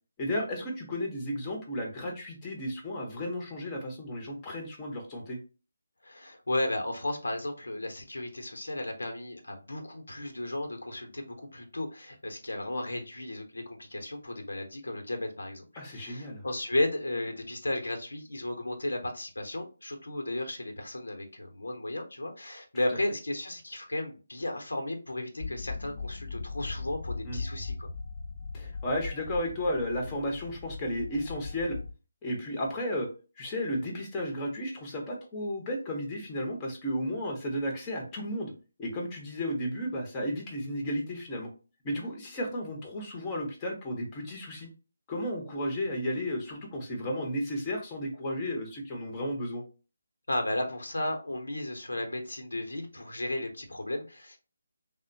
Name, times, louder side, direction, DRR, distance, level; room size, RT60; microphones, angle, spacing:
voice 1, 0.2-5.4 15.8-16.4 27.2-27.4 28.5-31.8 32.2-33.1 33.4-38.5 38.8-41.5 41.8-44.7 45.1-49.6, equal, 20° left, 0 dB, 0.7 m, -33 dB
voice 2, 6.0-27.9 50.3-54.4, left 1 dB, 80° left, 4 dB, 0.8 m, -34 dB
sound 1, 25.4-31.9, left 4 dB, 50° left, 0.6 m, -39 dB
3.5 x 2.1 x 2.6 m, 0.33 s
figure-of-eight pair, 155°, 0 cm